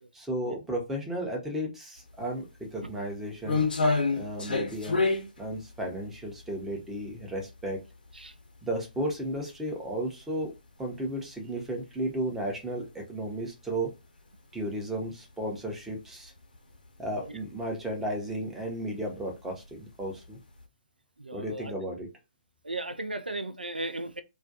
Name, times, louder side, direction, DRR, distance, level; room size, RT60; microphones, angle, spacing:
voice 1, 0.1-3.7 4.1-5.0 5.4-7.8 8.6-10.5 10.8-13.9 14.5-16.3 17.0-20.4 21.3-22.1, right 1 dB, 5° right, 0.6 m, -34 dB
sound 1, 2.1-2.2 2.7-7.7 8.1-8.2 8.9-9.1 9.4-9.5 10.4-10.5 10.8-11.0 11.5-11.7 12.0-12.1 14.2-14.3 15.6-15.9 16.3-16.7 17.1-17.3 17.6-17.7 18.7-18.9 19.5-20.2 20.6-20.7, left 3 dB, 75° left, 0.7 m, -28 dB
voice 2, 21.2-21.7 22.6-24.2, right 2 dB, 90° right, 0.3 m, -36 dB
2.3 x 2.2 x 2.6 m
figure-of-eight pair, 130°, 5 cm